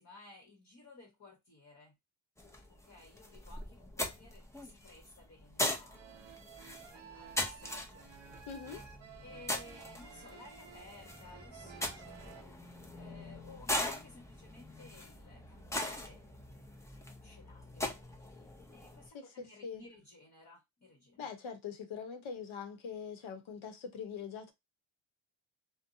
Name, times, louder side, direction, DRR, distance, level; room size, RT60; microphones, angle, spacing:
voice 1, 0.0-1.9 2.7-6.2 6.9-8.1 8.3-8.5 9.2-16.7 17.2-21.3, left 2 dB, 35° left, 1.1 m, -57 dB
sound 1, 2.4-19.1, left 1 dB, 5° left, 0.6 m, -41 dB
sound 2, 5.8-12.4, right 8 dB, 70° right, 0.7 m, -54 dB
voice 2, 8.5-8.8 19.1-19.8 21.2-24.5, left 6 dB, 80° left, 0.9 m, -43 dB
2.7 x 2.2 x 2.6 m
cardioid pair, 70°, 47 cm